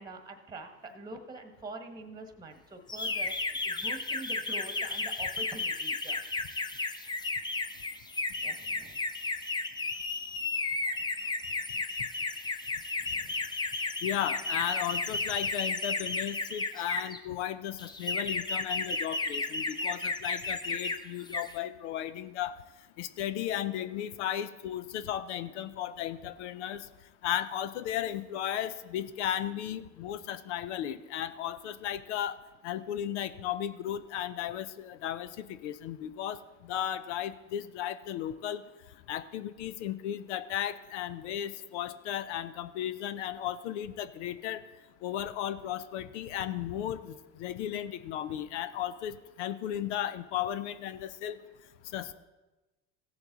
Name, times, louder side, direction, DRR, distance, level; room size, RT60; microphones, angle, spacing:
voice 1, 0.0-6.2 8.4-9.0 13.1-13.3, right 2 dB, 10° right, 6 dB, 1.2 m, -45 dB
sound 1, 2.9-17.2 17.8-21.0 21.2-21.6, left 3 dB, 15° left, 0.6 m, -33 dB
voice 2, 14.0-22.6 23.0-26.9 27.2-32.4 32.6-38.6 39.1-44.6 45.0-51.4 51.9-52.1, left 11 dB, 85° left, 13 dB, 0.6 m, -35 dB
16.0 x 7.0 x 3.9 m, 1.1 s
supercardioid pair, 105°, 34 cm